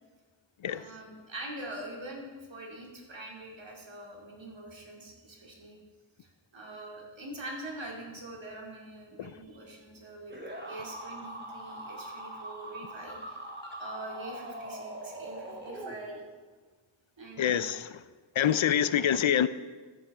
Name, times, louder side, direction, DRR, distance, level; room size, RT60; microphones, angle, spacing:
voice 1, 0.7-5.8 6.2-6.3 6.5-10.3 10.7-13.4 13.8-16.2 17.2-17.6, right 1 dB, 65° right, -1 dB, 2.7 m, -44 dB
sound 1, 10.3-16.3, right 1 dB, 20° right, 2.4 m, -42 dB
voice 2, 17.4-18.0 18.4-19.5, left 9 dB, 70° left, 14 dB, 0.6 m, -26 dB
13.5 x 8.6 x 3.7 m, 1.3 s
cardioid pair, 40°, 49 cm